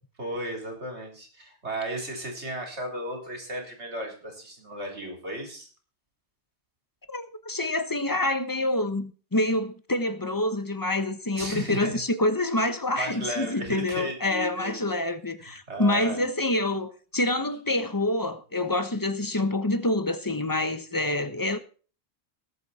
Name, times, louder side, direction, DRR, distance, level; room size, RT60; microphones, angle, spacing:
voice 1, 0.2-5.7 11.4-12.0 13.0-15.0 15.4-16.2, right 1 dB, 75° right, 4.1 m, -35 dB
voice 2, 7.1-21.6, left 2 dB, 20° left, 1.0 m, -27 dB
19.5 x 8.3 x 4.2 m
omnidirectional pair, 1.2 m